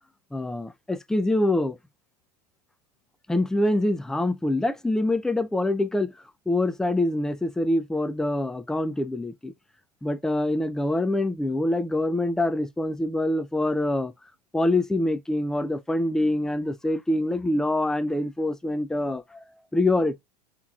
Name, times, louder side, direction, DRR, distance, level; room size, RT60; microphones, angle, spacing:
voice 1, 0.3-1.8 3.3-6.1 6.5-9.5 10.0-14.1 14.5-19.4 19.7-20.2, left 1 dB, 5° left, 0.3 m, -25 dB
5.5 x 3.0 x 2.4 m
hypercardioid pair, 105°, 21 cm